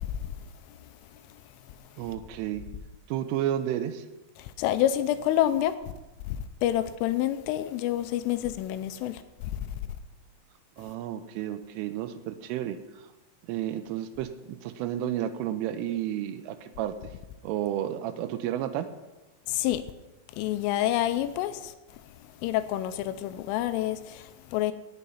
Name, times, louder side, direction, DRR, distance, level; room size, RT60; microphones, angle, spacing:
voice 1, 0.0-0.4 0.7-0.8 4.4-5.8 6.3-9.8 19.5-19.8 20.3-24.7, left 12 dB, 85° left, 3.0 m, -28 dB
voice 2, 2.0-2.6 3.1-4.1 10.8-13.1 13.4-17.0 17.4-18.9, right 11 dB, 80° right, 3.1 m, -32 dB
17.5 x 6.8 x 5.6 m
omnidirectional pair, 5.9 m